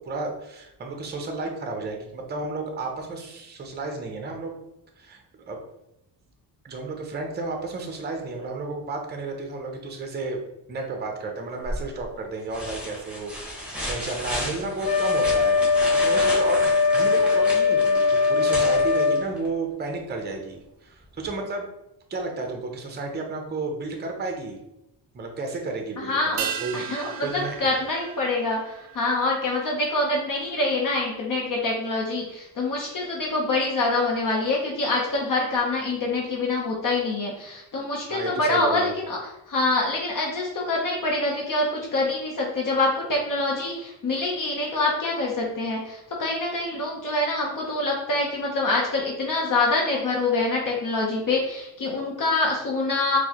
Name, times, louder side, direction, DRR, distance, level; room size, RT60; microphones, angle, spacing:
voice 1, 0.1-4.6 5.0-5.6 6.6-10.4 10.7-16.6 16.9-21.7 22.1-24.6 25.1-26.8 27.2-27.7 38.1-39.0, right 3 dB, 25° right, 3 dB, 0.5 m, -32 dB
sound 1, 11.6-12.0 12.5-19.5 21.2-21.3, equal, 5° right, 1.0 m, -33 dB
Wind instrument woodwind instrument, 14.8-19.3, left 4 dB, 25° left, 1.4 m, -20 dB
voice 2, 26.0-26.4 26.7-39.2 39.5-53.2, left 2 dB, 45° left, -2 dB, 0.7 m, -25 dB
sound 2, 26.4-31.1 31.3-31.4, right 9 dB, 70° right, 0.5 m, -37 dB
4.4 x 2.1 x 2.8 m, 0.88 s
cardioid pair, 120°, 44 cm